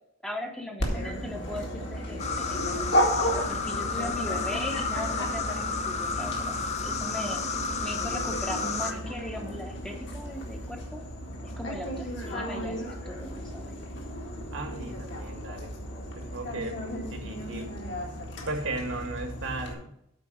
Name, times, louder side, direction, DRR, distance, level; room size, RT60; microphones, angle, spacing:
voice 1, 0.2-7.4 7.8-11.0 11.4-13.9, left 1 dB, 5° left, 2 dB, 0.9 m, -39 dB
Dog, 0.8-19.7, equal, 60° left, 1.8 m, -34 dB
sound 1, 2.2-8.9, left 5 dB, 35° left, 0.6 m, -32 dB
sound 2, 3.2-9.6, equal, 35° right, 1.0 m, -45 dB
voice 2, 14.5-15.7 16.1-16.8 17.1-17.7 18.4-19.9, right 2 dB, 65° right, 4 dB, 1.6 m, -35 dB
8.4 x 4.5 x 6.2 m, 0.77 s
head